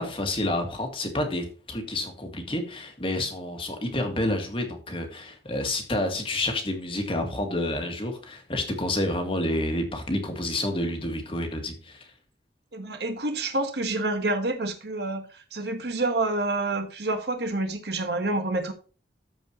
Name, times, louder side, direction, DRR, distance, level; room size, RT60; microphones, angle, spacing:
voice 1, 0.0-12.1, left 1 dB, 30° left, 1.9 m, -29 dB
voice 2, 12.7-18.7, right 2 dB, 65° right, 1.3 m, -28 dB
13.5 x 4.8 x 3.0 m
head